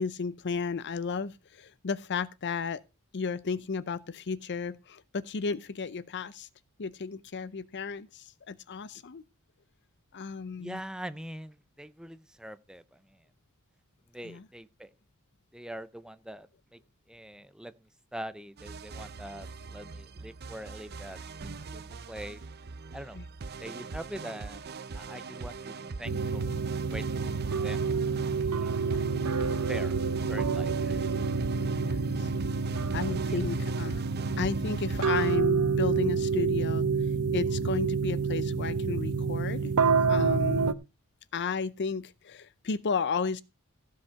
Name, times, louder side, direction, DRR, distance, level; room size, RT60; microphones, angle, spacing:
voice 1, 0.0-2.8 3.1-6.5 6.8-9.2 10.1-10.8 14.2-14.5 23.1-23.3 28.9-29.0 31.8-32.3 32.9-34.0 34.4-40.6 41.3-43.4, left 5 dB, 50° left, 0.6 m, -34 dB
voice 2, 10.6-13.0 14.1-14.9 15.5-16.5 16.7-16.8 17.1-21.2 21.7-21.8 22.1-22.4 22.9-23.2 23.6-24.6 24.9-27.4 27.6-27.8 28.4-28.7 29.4-30.0 30.3-31.0 33.3-33.4, right 1 dB, 5° right, 0.6 m, -43 dB
sound 1, 18.6-35.4, right 4 dB, 45° right, 0.6 m, -41 dB
sound 2, 26.0-40.7, right 5 dB, 90° right, 0.8 m, -28 dB
16.0 x 5.4 x 5.6 m
head